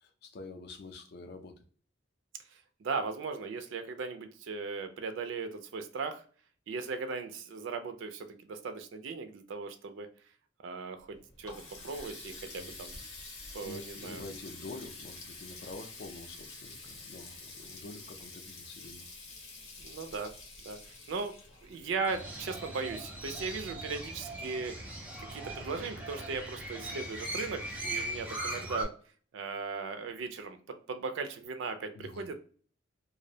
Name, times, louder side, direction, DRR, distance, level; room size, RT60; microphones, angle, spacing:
voice 1, 0.0-1.6 12.6-12.7 13.6-19.1 31.9-32.3, left 3 dB, 55° left, 6 dB, 0.4 m, -47 dB
voice 2, 2.5-6.2 6.7-10.1 10.6-12.9 13.5-14.2 19.8-20.3 20.6-21.4 21.6-24.8 25.2-28.9 29.3-32.4, right 4 dB, 70° right, 7 dB, 0.3 m, -38 dB
Water tap faucet, 11.0-22.7, left 3 dB, 85° left, 0.8 m, -48 dB
Crow, 22.1-28.8, right 1 dB, 10° right, 0.5 m, -39 dB
2.5 x 2.0 x 2.6 m, 0.43 s
head